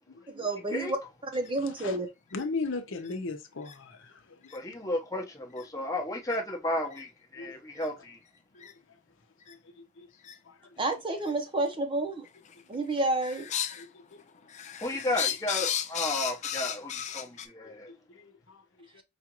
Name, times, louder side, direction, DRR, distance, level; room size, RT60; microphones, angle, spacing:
voice 1, 0.3-2.1 10.8-12.2 12.7-13.5, right 2 dB, 25° right, 0.7 m, -30 dB
sound 1, 1.4-1.5 2.3-2.4 3.1-3.2 3.6-3.7 4.4-4.6 5.6-5.7 6.2-6.4 6.9-7.0 7.8-7.9 8.6-8.7 9.4-9.5 10.2-10.3 11.2-11.3 12.2-12.6 12.9-13.8 14.2-17.5, left 9 dB, 35° left, 0.4 m, -34 dB
voice 2, 1.6-2.0 2.3-4.5 5.8-5.9 7.4-7.5 8.5-8.7 9.5-10.1 10.4-10.7 13.7-14.2 14.9-15.0 17.6-19.0, left 3 dB, 60° left, 0.8 m, -39 dB
voice 3, 4.5-8.2 14.8-17.9, left 1 dB, 15° left, 0.8 m, -33 dB
4.9 x 2.4 x 2.9 m
head